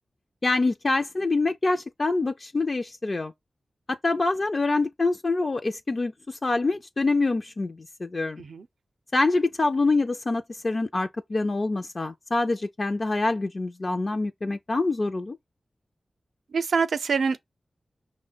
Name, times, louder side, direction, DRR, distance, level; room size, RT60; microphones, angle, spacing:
voice 1, 0.4-3.3 3.9-8.4 9.1-15.4, left 3 dB, 40° left, 0.3 m, -25 dB
voice 2, 16.5-17.4, right 5 dB, 85° right, 0.5 m, -25 dB
5.5 x 2.1 x 3.8 m
wide cardioid pair, 125°, 0 cm